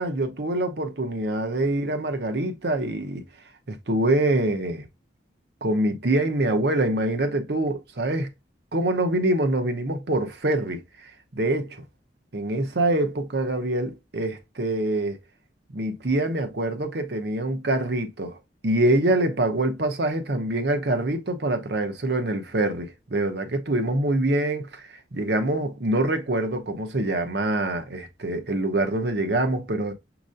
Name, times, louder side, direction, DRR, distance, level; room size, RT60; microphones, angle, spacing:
voice 1, 0.0-3.2 3.7-4.8 5.6-8.3 8.7-10.8 11.3-11.8 12.3-15.2 15.7-18.4 18.6-24.8 25.1-29.9, right 1 dB, 60° right, 0.8 m, -25 dB
6.3 x 3.0 x 2.5 m
head